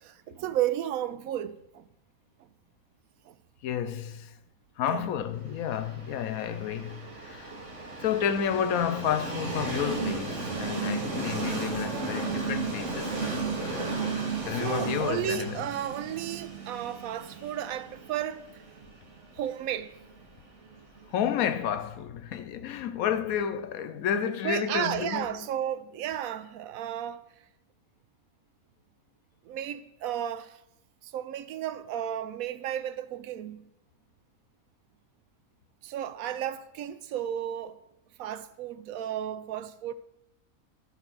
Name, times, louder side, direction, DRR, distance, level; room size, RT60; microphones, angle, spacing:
voice 1, 0.0-1.9 3.3-3.4 4.9-5.1 14.5-18.5 19.3-19.9 24.4-27.2 29.5-30.6 31.1-33.6 35.8-37.8 38.2-39.9, right 11 dB, 80° right, 1.0 m, -33 dB
voice 2, 3.6-4.3 4.8-7.5 8.0-13.2 13.6-13.9 14.4-15.6 21.1-25.3, left 8 dB, 85° left, 1.1 m, -31 dB
Train, 5.7-21.5, right 3 dB, 60° right, 1.7 m, -34 dB
12.0 x 4.4 x 6.0 m
omnidirectional pair, 1.5 m